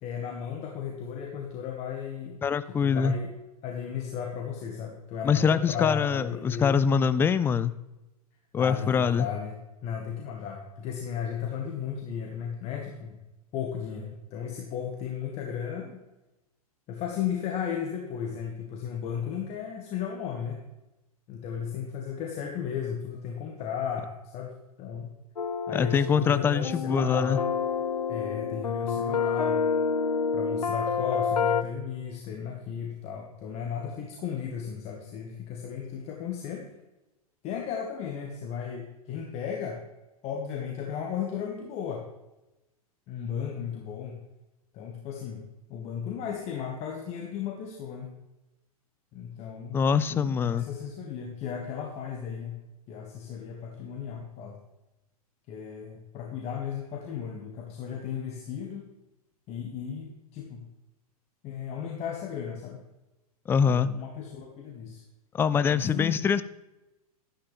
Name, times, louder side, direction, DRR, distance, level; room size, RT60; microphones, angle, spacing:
voice 1, 0.0-2.4 2.6-3.3 3.6-6.7 8.6-13.2 13.5-16.0 16.9-20.6 21.3-24.5 24.8-25.1 25.7-27.5 28.1-29.6 30.3-36.7 37.4-39.8 40.2-42.0 43.1-44.2 44.7-45.4 45.7-48.1 49.1-49.8 50.1-52.6 52.9-54.6 55.5-58.9 59.5-60.6 61.4-62.8 63.7-65.0 65.7-66.2, left 7 dB, 35° left, 1 dB, 1.6 m, -35 dB
voice 2, 2.4-3.2 5.2-7.7 8.5-9.3 25.7-27.4 49.7-50.7 63.5-63.9 65.3-66.4, left 6 dB, 10° left, 15 dB, 0.3 m, -24 dB
sound 1, 25.4-31.6, left 6 dB, 85° left, 0.6 m, -28 dB
12.0 x 11.0 x 3.4 m, 1.0 s
figure-of-eight pair, 110°, 20 cm